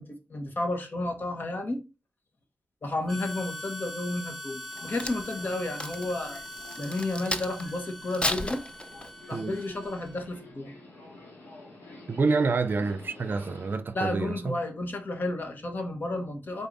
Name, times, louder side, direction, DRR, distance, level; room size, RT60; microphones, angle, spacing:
voice 1, 0.0-1.8 2.8-6.4 6.8-8.6 9.3-10.7 13.9-16.7, left 2 dB, 55° left, 1.2 m, -32 dB
Harmonica, 3.1-10.4, left 1 dB, 10° left, 1.7 m, -42 dB
Crack, 4.6-7.7 8.1-9.3 9.8-10.1, left 1 dB, 25° left, 0.6 m, -33 dB
Subway metro underground, 4.7-13.8, left 2 dB, 80° left, 1.8 m, -49 dB
voice 2, 12.1-14.6, right 4 dB, 55° right, 0.5 m, -27 dB
4.6 x 4.0 x 2.6 m
cardioid pair, 55°, 4 cm